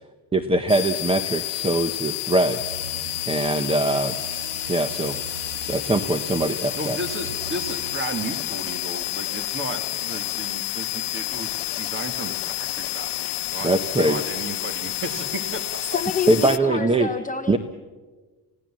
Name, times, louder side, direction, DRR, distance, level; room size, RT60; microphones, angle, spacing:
voice 1, 0.3-2.6 3.3-4.1 4.7-5.2 5.6-7.0 13.6-14.2 16.3-17.1 17.5-17.6, right 2 dB, 15° right, 10 dB, 0.7 m, -22 dB
sound 1, 0.7-16.6, left 17 dB, 75° left, 0.8 m, -30 dB
sound 2, 2.4-8.0, right 6 dB, 75° right, 1.7 m, -40 dB
voice 2, 6.8-15.8, right 2 dB, 30° right, 8 dB, 2.2 m, -34 dB
voice 3, 15.8-17.6, left 6 dB, 20° left, 6 dB, 0.8 m, -28 dB
29.0 x 17.0 x 7.5 m, 1.3 s
cardioid pair, 170°, 41 cm